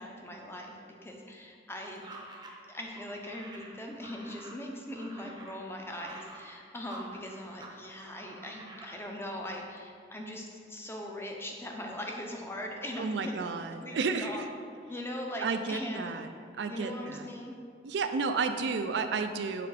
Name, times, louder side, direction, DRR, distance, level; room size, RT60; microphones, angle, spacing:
voice 1, 0.0-2.2 2.7-13.4 13.8-14.4 14.9-16.1 16.7-17.6, left 1 dB, 15° left, 1 dB, 0.6 m, -40 dB
sound 1, 1.9-7.8 8.0-9.0, right 2 dB, 25° right, 0.7 m, -49 dB
voice 2, 13.0-14.5 15.4-16.3 16.6-17.3 17.8-19.7, right 4 dB, 75° right, 8 dB, 0.4 m, -32 dB
6.7 x 3.4 x 4.9 m, 2.2 s
head